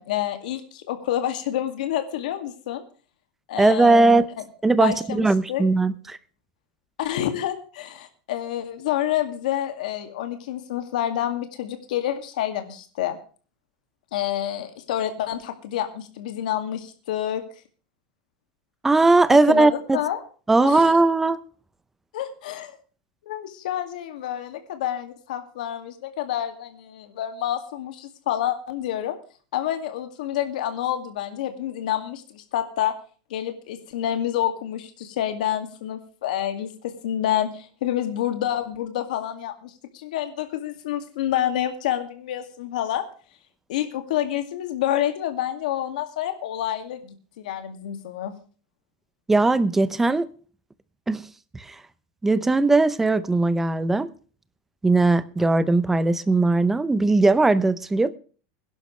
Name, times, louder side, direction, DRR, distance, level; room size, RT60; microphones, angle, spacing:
voice 1, 0.0-2.8 3.5-4.2 4.8-5.6 7.0-13.2 14.1-17.4 19.5-20.2 20.6-20.8 22.1-22.8 23.2-29.2 29.5-32.9 33.3-43.1 43.7-48.3, left 11 dB, 85° left, 2.1 m, -28 dB
voice 2, 3.6-4.2 4.6-6.2 18.8-20.0 20.5-21.4 49.3-50.3 51.1-51.2 51.5-51.8 52.2-54.1 54.8-58.2, right 3 dB, 5° right, 0.6 m, -19 dB
21.5 x 11.5 x 3.2 m
supercardioid pair, 165°, 4 cm